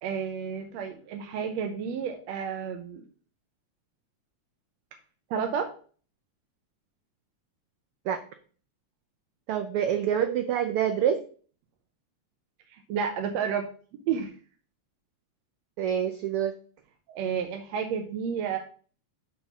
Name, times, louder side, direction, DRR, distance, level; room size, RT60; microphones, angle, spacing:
voice 1, 0.0-3.0 5.3-5.7 12.7-13.7 14.1-14.3 17.1-18.6, right 7 dB, 75° right, 4 dB, 1.8 m, -31 dB
voice 2, 9.5-11.2 15.8-16.5, right 9 dB, 90° right, 7 dB, 1.2 m, -26 dB
7.0 x 4.2 x 6.0 m, 0.42 s
omnidirectional pair, 3.3 m